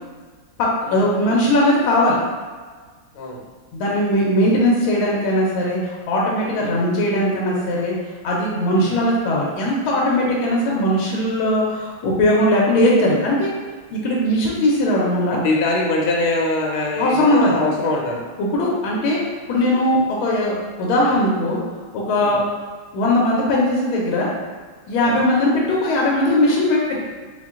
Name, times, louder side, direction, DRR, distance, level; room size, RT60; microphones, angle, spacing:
voice 1, 0.6-2.2 3.7-7.9 8.2-13.5 13.9-15.4 17.0-17.6 18.4-19.2 19.5-21.6 21.9-22.4 22.9-24.3 24.9-27.0, left 1 dB, 75° left, -4 dB, 1.5 m, -19 dB
voice 2, 15.4-18.2 22.2-22.4 25.0-25.2, left 2 dB, 90° left, -1 dB, 1.6 m, -23 dB
4.3 x 2.2 x 3.6 m, 1.5 s
omnidirectional pair, 2.4 m